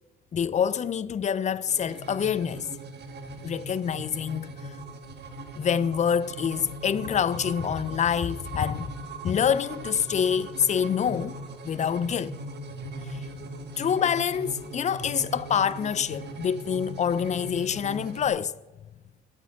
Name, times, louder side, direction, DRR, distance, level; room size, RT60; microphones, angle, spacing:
voice 1, 0.3-2.7 3.4-4.6 5.6-8.9 9.2-12.4 13.1-13.2 13.8-18.5, left 8 dB, 35° left, 0.4 m, -26 dB
sound 1, 1.6-18.3, right 2 dB, 60° right, 1.4 m, -40 dB
8.6 x 8.1 x 5.8 m
cardioid pair, 90°, 20 cm